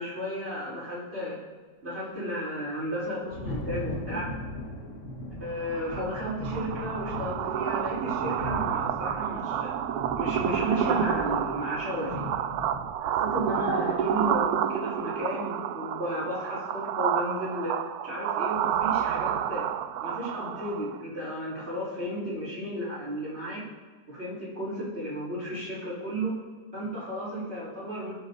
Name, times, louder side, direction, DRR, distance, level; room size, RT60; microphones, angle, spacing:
voice 1, 0.0-1.4 1.8-4.3 5.4-9.7 10.2-12.3 13.0-17.7 18.0-19.7 20.0-23.6 24.1-26.3 26.7-28.1, equal, 40° right, -7 dB, 5.5 m, -33 dB
Thunder, 2.8-12.9, left 1 dB, 45° left, 2.0 m, -38 dB
sound 1, 5.7-21.0, right 10 dB, 70° right, 1.1 m, -30 dB
22.5 x 8.7 x 4.1 m, 1.5 s
omnidirectional pair, 1.8 m